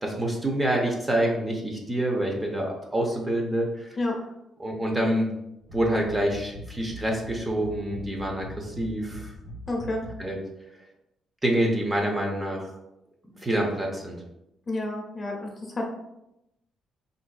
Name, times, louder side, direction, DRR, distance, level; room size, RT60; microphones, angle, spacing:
voice 1, 0.0-3.9 4.6-5.3 5.7-9.3 10.2-10.4 11.4-12.7 13.4-14.2, right 1 dB, 15° right, 0 dB, 0.7 m, -26 dB
sound 1, 5.6-10.3, equal, 90° right, 1.4 m, -41 dB
voice 2, 9.7-10.0 14.7-15.9, left 2 dB, 30° left, 0 dB, 0.8 m, -30 dB
4.2 x 2.6 x 2.3 m, 0.87 s
cardioid pair, 100°, 0 cm